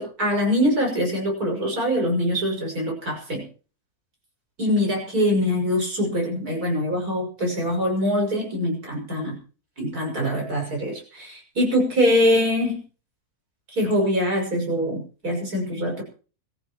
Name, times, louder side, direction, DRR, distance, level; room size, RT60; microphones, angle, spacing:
voice 1, 0.0-3.4 4.6-9.4 9.8-12.8 13.7-16.0, equal, 80° right, 0 dB, 7.0 m, -23 dB
26.5 x 14.5 x 3.1 m, 0.38 s
omnidirectional pair, 1.6 m